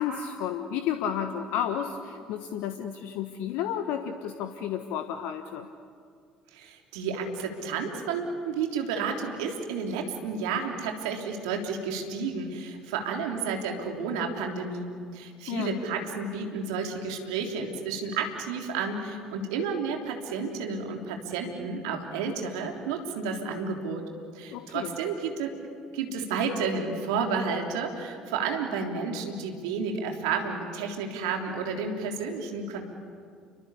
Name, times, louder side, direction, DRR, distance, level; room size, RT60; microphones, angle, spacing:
voice 1, 0.0-5.7 15.5-15.8 24.5-24.9, left 9 dB, 65° left, 8 dB, 1.3 m, -32 dB
voice 2, 6.5-24.0 24.3-25.5 25.9-32.8, right 5 dB, 75° right, 3 dB, 3.4 m, -31 dB
29.5 x 24.0 x 8.4 m, 2.2 s
hypercardioid pair, 55°, 3 cm